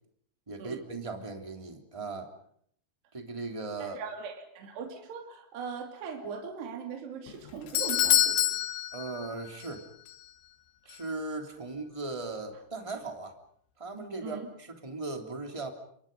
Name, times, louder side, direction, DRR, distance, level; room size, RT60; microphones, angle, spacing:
voice 1, 0.5-2.3 3.1-4.0 8.9-9.9 10.8-13.3 13.8-15.7, right 3 dB, 10° right, 4 dB, 2.2 m, -38 dB
voice 2, 3.8-8.4 14.2-14.5, right 6 dB, 60° right, 3 dB, 4.7 m, -40 dB
Doorbell, 7.3-9.8 10.1-10.2 10.9-11.0, left 13 dB, 80° left, 4.1 m, -27 dB
29.5 x 25.5 x 5.4 m, 0.65 s
omnidirectional pair, 5.5 m